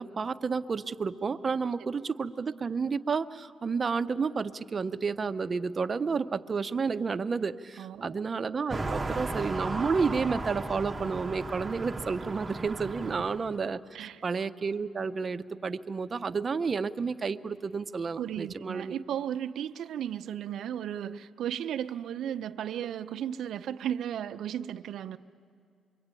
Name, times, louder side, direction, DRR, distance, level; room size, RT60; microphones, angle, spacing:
voice 1, 0.0-18.9, right 5 dB, 35° right, 11 dB, 0.7 m, -31 dB
voice 2, 7.8-8.2 13.0-13.1 13.9-14.2 18.2-25.2, right 10 dB, 70° right, 10 dB, 0.7 m, -35 dB
sound 1, 8.7-13.6, right 2 dB, 20° right, 1.0 m, -35 dB
26.0 x 23.0 x 9.0 m, 2.3 s
cardioid pair, 90°, 0 cm